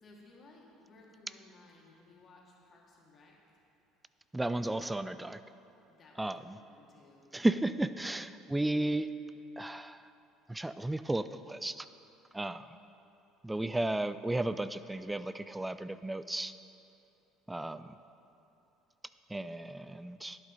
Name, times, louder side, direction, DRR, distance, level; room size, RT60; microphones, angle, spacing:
voice 1, 0.0-3.4 5.9-7.3, left 2 dB, 40° left, -2 dB, 2.3 m, -59 dB
voice 2, 4.3-5.4 6.2-6.6 7.3-9.1 9.6-10.0 10.5-11.8 12.3-12.7 13.4-16.5 17.5-17.8 19.3-20.4, right 1 dB, 10° right, 13 dB, 0.3 m, -33 dB
11.0 x 9.2 x 4.0 m, 2.9 s
hypercardioid pair, 75°, 0 cm